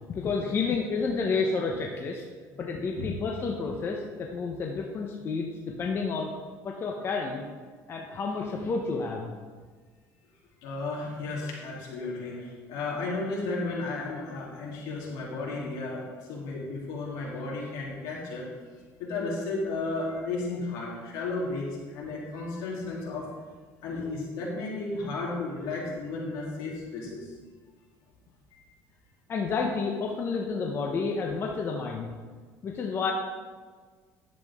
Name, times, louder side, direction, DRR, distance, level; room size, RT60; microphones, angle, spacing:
voice 1, 0.0-2.2 2.6-5.5 5.8-6.3 6.6-7.5 7.9-9.3 23.9-24.0 29.3-32.1 32.6-33.1, left 4 dB, 35° left, 0 dB, 0.9 m, -30 dB
voice 2, 10.6-18.4 19.0-23.3 23.8-27.3, left 3 dB, 75° left, -4 dB, 3.1 m, -33 dB
10.5 x 7.5 x 3.7 m, 1.5 s
cardioid pair, 130°, 7 cm